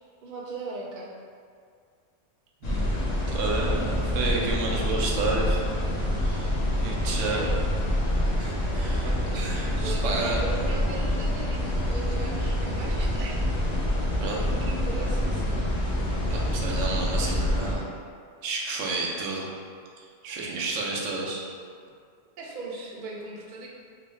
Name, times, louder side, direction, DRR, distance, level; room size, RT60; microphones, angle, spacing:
voice 1, 0.2-1.1 7.2-7.6 9.8-13.5 14.4-15.7 22.4-23.7, right 2 dB, 55° right, -3 dB, 0.5 m, -38 dB
sound 1, 2.6-17.8, left 1 dB, 45° left, 0.5 m, -27 dB
voice 2, 3.3-5.6 6.2-6.5 6.8-7.4 8.4-10.4 14.2-14.5 16.3-17.8 18.4-19.5 20.2-21.4, right 3 dB, 85° right, -2 dB, 0.9 m, -31 dB
3.0 x 2.7 x 3.1 m, 2.2 s
omnidirectional pair, 1.2 m